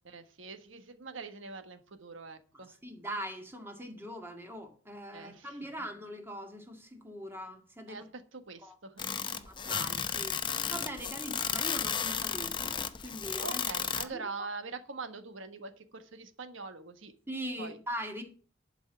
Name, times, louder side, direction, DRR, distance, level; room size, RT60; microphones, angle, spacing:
voice 1, 0.0-2.8 5.1-5.9 7.9-9.5 13.4-17.1 17.6-17.8, right 4 dB, 75° right, 1.3 m, -44 dB
voice 2, 2.5-8.1 8.6-8.8 9.5-12.8 13.0-13.6 14.0-14.2 17.3-18.2, equal, 10° right, 1.8 m, -41 dB
sound 1, 9.0-14.0, left 7 dB, 25° left, 0.7 m, -33 dB
11.0 x 5.5 x 6.9 m
head